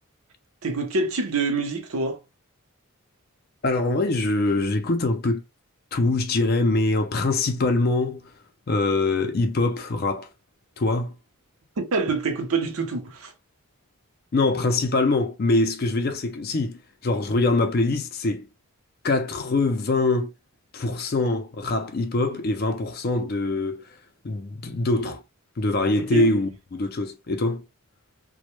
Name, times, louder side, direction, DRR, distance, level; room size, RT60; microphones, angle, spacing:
voice 1, 0.6-2.2 11.8-13.3 26.0-26.3, right 4 dB, 75° right, 0.6 m, -26 dB
voice 2, 3.6-5.4 5.9-8.3 8.7-10.3 10.8-11.1 14.3-18.5 19.0-20.3 20.7-24.0 24.2-25.2 25.6-27.6, left 2 dB, 45° left, 0.4 m, -23 dB
2.1 x 2.1 x 3.0 m
head